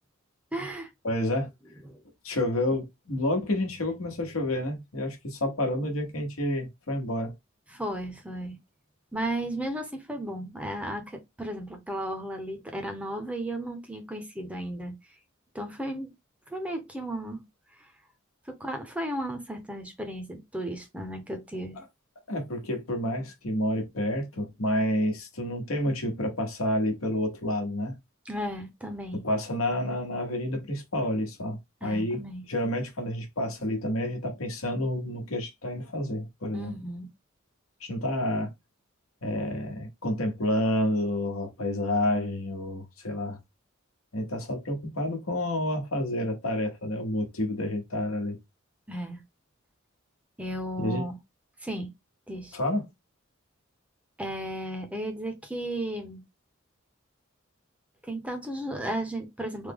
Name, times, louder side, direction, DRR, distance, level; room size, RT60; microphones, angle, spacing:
voice 1, 0.5-0.9 1.8-2.0 7.7-8.5 9.1-14.9 15.5-16.1 16.5-17.4 18.5-21.8 28.3-29.2 31.8-32.4 36.5-37.1 48.9-49.2 50.4-51.2 51.6-51.9 52.3-52.6 54.2-56.2 58.0-59.7, right 1 dB, 5° right, 0.6 m, -34 dB
voice 2, 1.0-1.5 2.2-7.3 22.3-28.0 29.2-32.2 32.5-36.8 37.8-38.5 39.2-43.4 44.1-48.4 50.8-51.0 52.5-52.9, left 1 dB, 85° left, 1.1 m, -29 dB
3.4 x 2.1 x 3.5 m
head